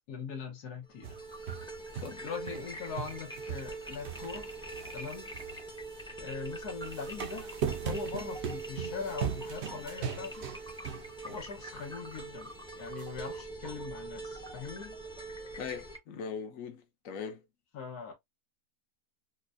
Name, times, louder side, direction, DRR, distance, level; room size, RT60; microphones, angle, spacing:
voice 1, 0.1-1.2 2.2-4.6 4.9-5.3 6.2-7.5 7.8-10.5 11.2-12.5 12.8-15.0 17.7-18.1, left 6 dB, 90° left, 1.5 m, -41 dB
sound 1, 0.9-16.0, right 3 dB, 5° left, 0.5 m, -43 dB
sound 2, 1.0-2.7 2.9-6.1 6.7-11.5 11.8-11.9 13.0-13.1, right 8 dB, 60° right, 0.7 m, -39 dB
voice 2, 15.6-17.4, left 6 dB, 65° left, 1.1 m, -40 dB
4.3 x 2.2 x 2.5 m
omnidirectional pair, 1.6 m